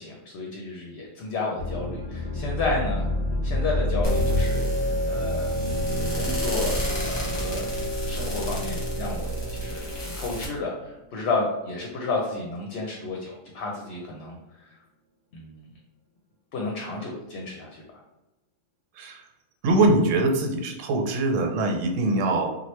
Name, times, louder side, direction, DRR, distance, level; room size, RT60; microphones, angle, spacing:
voice 1, 0.0-3.1 3.4-5.5 6.1-6.8 7.1-7.6 8.0-14.3 14.6-14.7 15.3-15.7 16.5-17.8, left 3 dB, 65° left, -1 dB, 0.8 m, -31 dB
sound 1, 1.6-10.8 11.2-11.3, left 2 dB, 55° right, 1.0 m, -29 dB
sound 2, 4.0-10.5, equal, 40° left, 1.0 m, -29 dB
voice 2, 19.6-22.5, right 2 dB, 85° right, 3 dB, 0.9 m, -22 dB
2.9 x 2.3 x 3.1 m, 0.98 s
omnidirectional pair, 1.3 m